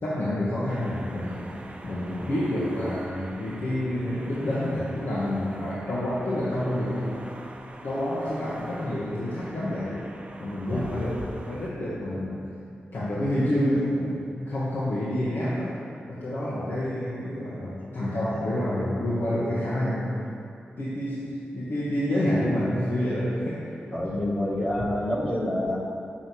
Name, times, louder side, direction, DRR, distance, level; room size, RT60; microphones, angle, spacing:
voice 1, 0.0-1.5 1.8-7.2 7.8-10.0 10.4-12.5 12.9-15.8 16.0-20.2 20.8-21.3 21.5-23.7, left 1 dB, 70° left, -9 dB, 1.4 m, -28 dB
sound 1, 0.7-11.7, right 1 dB, 30° right, 0.7 m, -45 dB
voice 2, 23.9-25.8, left 1 dB, 35° left, -6 dB, 1.5 m, -27 dB
6.2 x 4.0 x 6.3 m, 2.6 s
supercardioid pair, 40°, 4 cm